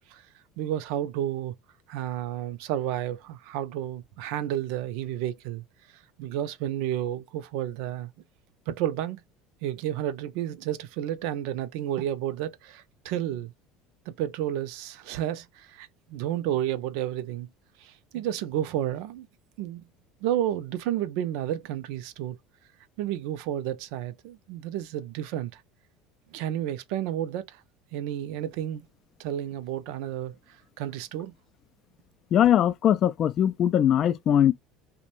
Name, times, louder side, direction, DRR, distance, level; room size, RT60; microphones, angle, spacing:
voice 1, 0.6-1.5 1.9-5.6 6.2-8.1 8.7-9.2 9.6-13.5 14.1-17.5 17.8-19.3 19.6-19.8 20.2-22.4 23.0-25.6 26.3-27.6 27.9-28.8 29.2-31.3, right 11 dB, 75° right, 0.4 m, -31 dB
voice 2, 32.3-34.5, left 10 dB, 50° left, 0.3 m, -21 dB
2.5 x 2.1 x 2.9 m
supercardioid pair, 100°, 0 cm